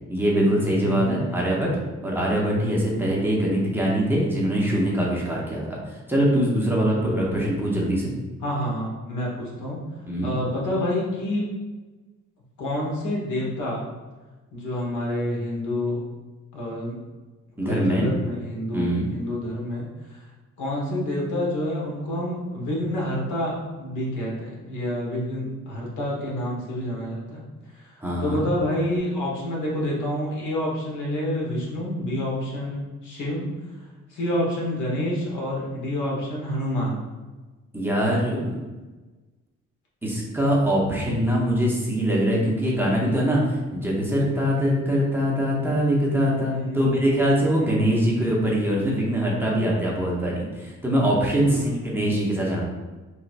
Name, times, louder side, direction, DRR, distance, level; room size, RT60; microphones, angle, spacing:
voice 1, 0.1-1.7 2.0-8.1 10.1-10.3 17.6-18.1 18.7-19.1 28.0-28.4 37.7-38.6 40.0-52.6, equal, 5° right, -5 dB, 0.7 m, -23 dB
voice 2, 0.8-1.5 7.0-7.3 8.4-9.8 10.2-11.4 12.6-13.9 14.5-16.0 16.5-17.0 17.6-20.2 20.6-27.4 27.7-33.5 34.1-37.0 46.3-46.8 47.6-48.5 51.4-52.1, left 1 dB, 85° left, -4 dB, 1.4 m, -28 dB
4.4 x 3.1 x 2.5 m, 1.2 s
cardioid pair, 145°, 30 cm